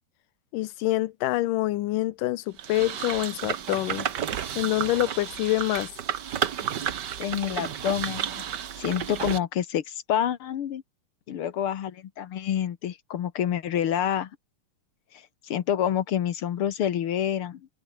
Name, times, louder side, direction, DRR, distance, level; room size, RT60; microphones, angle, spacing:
voice 1, 0.5-4.1 4.6-5.9, left 16 dB, 90° left, 2.5 m, -26 dB
sound 1, 2.6-9.4, right 9 dB, 75° right, 0.9 m, -32 dB
voice 2, 7.2-8.4 8.8-10.8 11.3-14.3 15.4-17.6, left 10 dB, 55° left, 1.7 m, -27 dB
omnidirectional pair, 3.7 m